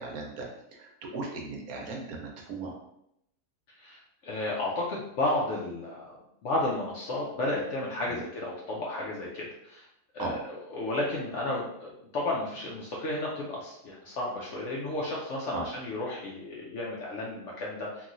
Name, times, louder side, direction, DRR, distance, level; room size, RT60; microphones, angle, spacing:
voice 1, 0.0-2.8 8.1-8.2 10.2-10.4 15.5-15.7, right 3 dB, 70° right, 0 dB, 1.1 m, -37 dB
voice 2, 3.8-9.9 10.1-10.4 10.7-18.1, left 2 dB, 70° left, -4 dB, 0.7 m, -33 dB
3.0 x 2.6 x 2.5 m, 0.78 s
omnidirectional pair, 1.7 m